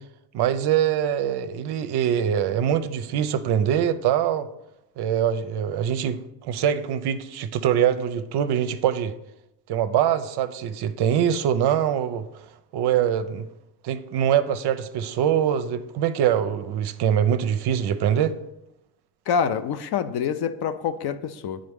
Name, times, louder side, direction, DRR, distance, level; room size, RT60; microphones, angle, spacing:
voice 1, 0.3-4.5 5.0-9.1 9.7-12.3 12.7-13.4 13.8-18.3, right 9 dB, 55° right, 0.5 m, -23 dB
voice 2, 19.3-21.6, left 7 dB, 50° left, 0.5 m, -26 dB
8.5 x 3.8 x 3.5 m
cardioid pair, 90°, 50 cm